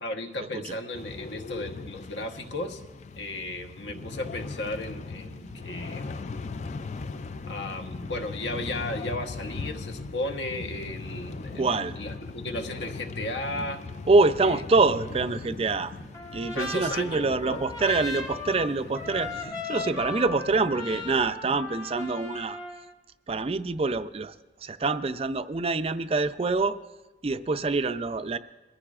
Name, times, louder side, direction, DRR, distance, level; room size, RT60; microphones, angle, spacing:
voice 1, 0.0-2.8 3.1-6.1 7.5-13.8 14.4-14.6 16.5-17.6, left 1 dB, 70° left, 5 dB, 1.1 m, -35 dB
sound 1, 0.9-19.5, left 4 dB, 40° left, 0.3 m, -40 dB
sound 2, 3.9-21.6, left 1 dB, 90° left, 5.1 m, -48 dB
voice 2, 11.5-12.0 14.1-15.9 16.3-22.6 23.3-24.3 24.6-26.8 27.2-28.4, right 3 dB, 30° right, 11 dB, 0.4 m, -25 dB
Trumpet, 16.1-22.9, left 3 dB, 20° left, 1.1 m, -37 dB
22.5 x 15.0 x 2.4 m, 1.1 s
head